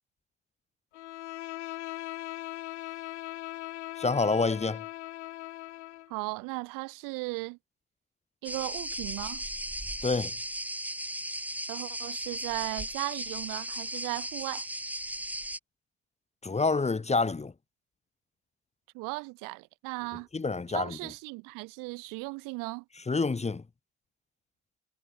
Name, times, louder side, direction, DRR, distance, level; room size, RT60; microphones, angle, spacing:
Bowed string instrument, 0.9-6.1, left 16 dB, 80° left, 1.3 m, -40 dB
voice 1, 4.0-4.8 10.0-10.3 16.4-17.5 20.3-21.0 23.1-23.6, left 3 dB, 20° left, 2.2 m, -27 dB
voice 2, 6.1-7.6 8.4-9.4 11.7-14.7 18.9-20.3 20.7-22.8, right 27 dB, 65° right, 5.6 m, -36 dB
sound 1, 8.4-15.6, right 1 dB, 5° right, 4.0 m, -36 dB
hypercardioid pair, 60°, 35 cm